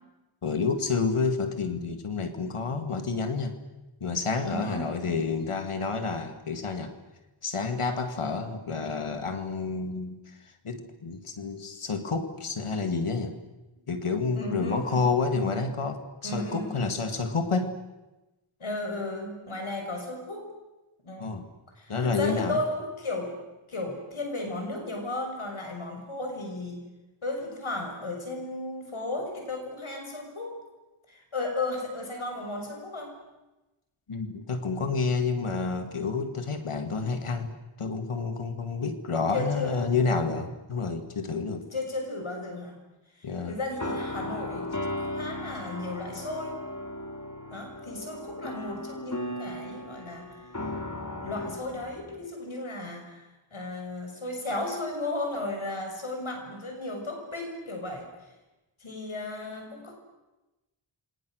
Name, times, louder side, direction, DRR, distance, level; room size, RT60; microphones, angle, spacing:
voice 1, 0.4-3.6 4.0-6.9 7.4-10.3 10.6-13.3 13.9-17.7 21.2-21.4 21.9-22.6 34.1-41.7 43.2-43.6, left 4 dB, 90° left, 8 dB, 2.2 m, -29 dB
voice 2, 4.4-5.3 14.3-15.7 16.2-16.7 18.6-20.5 21.0-21.3 21.8-23.4 23.7-26.9 27.2-30.6 31.1-33.2 39.3-39.8 41.7-42.8 43.1-46.6 47.5-50.4 51.1-58.1 58.8-59.9, left 2 dB, 75° left, 2 dB, 6.3 m, -35 dB
sound 1, 43.7-52.2, left 1 dB, 35° left, 3.2 m, -36 dB
28.5 x 26.0 x 6.5 m, 1.0 s
wide cardioid pair, 45°, 49 cm